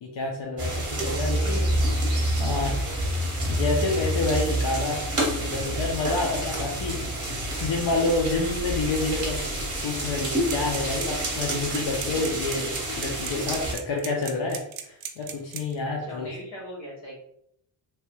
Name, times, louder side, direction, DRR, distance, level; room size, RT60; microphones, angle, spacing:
voice 1, 0.0-1.6 2.4-2.8 3.5-5.0 5.4-7.0 7.6-9.4 9.8-16.3, left 3 dB, 60° left, -1 dB, 0.6 m, -28 dB
sound 1, 0.6-13.7, right 1 dB, 30° right, 1.0 m, -28 dB
voice 2, 0.9-1.8 15.8-17.1, left 1 dB, 80° left, -3 dB, 1.5 m, -40 dB
sound 2, 10.5-15.8, right 9 dB, 80° right, 0.6 m, -36 dB
3.0 x 2.2 x 3.0 m, 0.74 s
wide cardioid pair, 175°, 48 cm